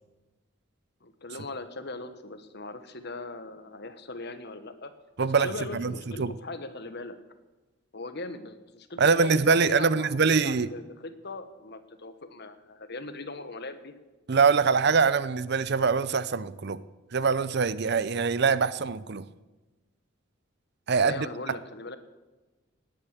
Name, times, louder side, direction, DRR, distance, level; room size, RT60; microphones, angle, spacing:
voice 1, 1.0-4.9 5.2-7.2 7.9-13.9 20.9-22.0, left 2 dB, 55° left, 10 dB, 1.4 m, -40 dB
voice 2, 5.2-5.9 6.2-6.3 9.0-10.7 14.3-16.8 17.1-19.2 20.9-21.3, right 5 dB, 55° right, 16 dB, 0.6 m, -23 dB
18.5 x 9.0 x 8.4 m, 1.2 s
head